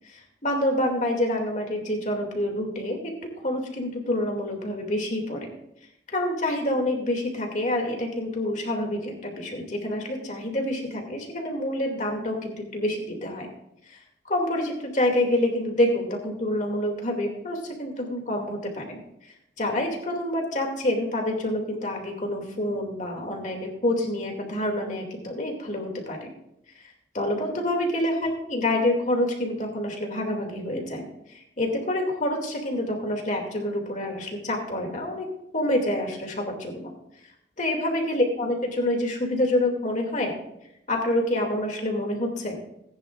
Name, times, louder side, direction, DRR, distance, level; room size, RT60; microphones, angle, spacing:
voice 1, 0.1-3.1 3.4-5.5 6.1-13.5 13.9-14.0 14.2-19.0 19.6-26.3 26.7-26.8 27.1-35.3 35.5-36.9 37.6-40.4 40.9-42.6, left 1 dB, 40° left, 1 dB, 2.4 m, -27 dB
18.5 x 10.0 x 2.4 m, 0.81 s
head